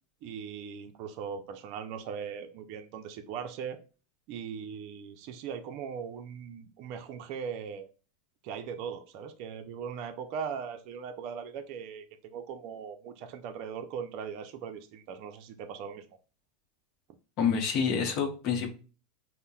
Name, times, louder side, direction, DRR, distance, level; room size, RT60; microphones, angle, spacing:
voice 1, 0.2-3.8 4.3-7.9 8.4-16.2, right 7 dB, 50° right, 6 dB, 0.5 m, -39 dB
voice 2, 17.4-18.7, left 6 dB, 50° left, 5 dB, 0.8 m, -27 dB
5.3 x 2.1 x 2.3 m, 0.36 s
supercardioid pair, 135°, 0 cm